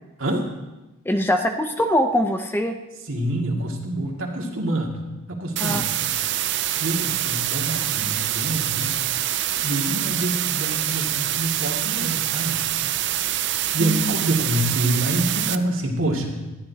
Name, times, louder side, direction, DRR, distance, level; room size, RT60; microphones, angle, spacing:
voice 1, 1.1-2.7 5.6-5.8 13.8-14.2, equal, 10° left, 5 dB, 0.6 m, -22 dB
voice 2, 3.0-5.0 5.3-5.9 6.8-8.9 9.6-12.7 13.7-16.4, right 1 dB, 75° right, 0 dB, 2.3 m, -26 dB
sound 1, 5.6-15.6, right 12 dB, 55° right, 0.5 m, -25 dB
20.0 x 13.5 x 2.9 m, 1.0 s
head